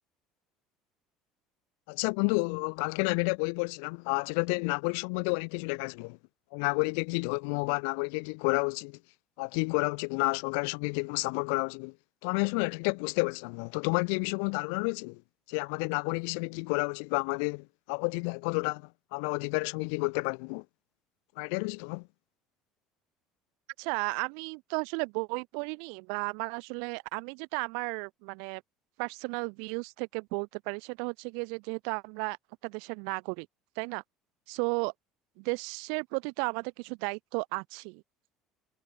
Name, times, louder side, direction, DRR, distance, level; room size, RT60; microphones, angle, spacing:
voice 1, 1.9-6.2 6.5-9.0 9.4-11.9 12.2-15.2 15.5-20.6 21.4-22.1, left 39 dB, 85° left, 2.8 m, -30 dB
voice 2, 23.8-28.6 29.0-32.4 32.6-33.5 33.7-34.0 34.5-34.9 35.4-38.0, right 40 dB or more, 75° right, 5.1 m, -34 dB
cardioid pair, 175°, 0 cm